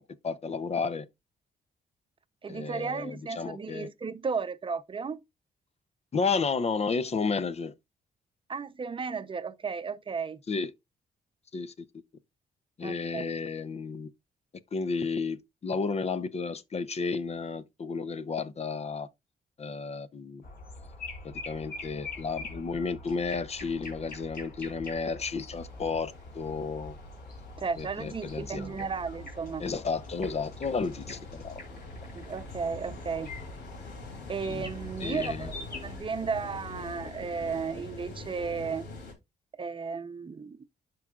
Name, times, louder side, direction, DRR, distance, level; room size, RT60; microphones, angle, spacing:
voice 1, 0.2-1.1 2.5-3.9 6.1-7.7 10.5-10.7 11.5-11.9 12.8-14.1 14.7-19.1 19.6-20.4 21.2-27.0 27.8-28.7 29.6-31.6 34.5-34.7 35.0-35.5, left 4 dB, 40° left, 0.6 m, -32 dB
voice 2, 2.4-5.2 8.5-10.4 12.8-13.3 27.6-29.6 32.1-33.3 34.3-38.9 39.6-40.6, right 5 dB, 30° right, 0.7 m, -34 dB
sound 1, 20.4-36.0, left 2 dB, 60° left, 4.7 m, -44 dB
sound 2, 25.5-39.1, left 3 dB, 90° left, 3.0 m, -46 dB
12.0 x 4.6 x 2.4 m
cardioid pair, 100°, 18 cm